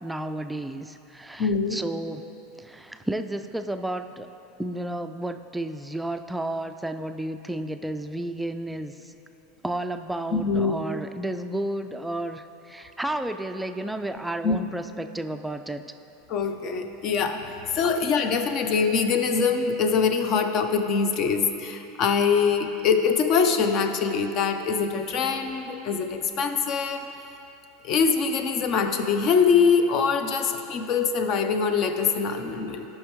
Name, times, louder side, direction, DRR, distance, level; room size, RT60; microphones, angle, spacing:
voice 1, 0.0-2.2 2.6-4.3 4.6-9.1 9.6-15.8 17.8-18.0, right 1 dB, 5° right, 8 dB, 0.3 m, -32 dB
voice 2, 1.4-1.8 10.3-10.8 14.4-14.6 16.3-27.0 27.8-32.9, left 5 dB, 45° left, 7 dB, 0.6 m, -23 dB
13.0 x 5.6 x 3.1 m, 3.0 s
supercardioid pair, 110°, 0 cm